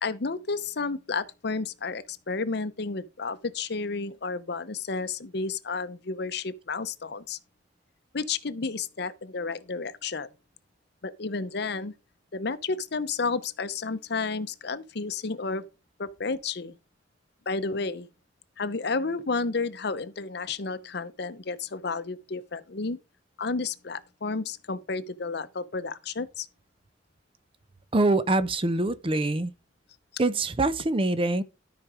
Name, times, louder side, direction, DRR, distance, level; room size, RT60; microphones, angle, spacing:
voice 1, 0.0-7.4 8.1-10.3 11.0-11.9 12.3-15.6 16.0-16.7 17.5-18.1 18.6-23.0 23.4-26.5, left 4 dB, 60° left, 0.8 m, -31 dB
voice 2, 27.9-29.5 30.2-31.4, right 2 dB, 30° right, 0.6 m, -24 dB
13.0 x 5.1 x 4.9 m
head